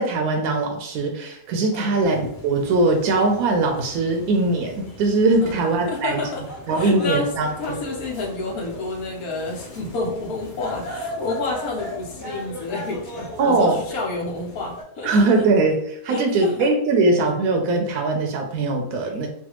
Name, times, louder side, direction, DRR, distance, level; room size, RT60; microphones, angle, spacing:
voice 1, 0.0-6.2 6.7-7.8 13.4-13.8 15.0-19.3, right 3 dB, 75° right, 2 dB, 1.0 m, -21 dB
sound 1, 2.0-14.8, left 1 dB, 35° left, 1.1 m, -38 dB
voice 2, 5.9-6.4 6.7-7.3 7.6-15.2 16.1-16.5 18.9-19.3, left 2 dB, 70° left, -1 dB, 1.3 m, -29 dB
3.3 x 2.4 x 2.9 m, 0.68 s
omnidirectional pair, 1.6 m